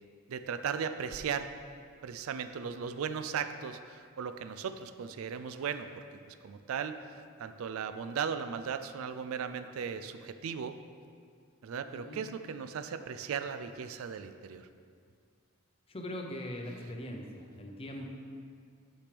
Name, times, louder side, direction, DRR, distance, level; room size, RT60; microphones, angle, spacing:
voice 1, 0.3-1.5 2.0-10.8 11.6-14.7, right 7 dB, 70° right, 10 dB, 0.3 m, -37 dB
voice 2, 11.9-12.2 15.9-18.2, left 1 dB, 25° left, 2 dB, 0.7 m, -41 dB
8.8 x 6.0 x 3.4 m, 2.2 s
head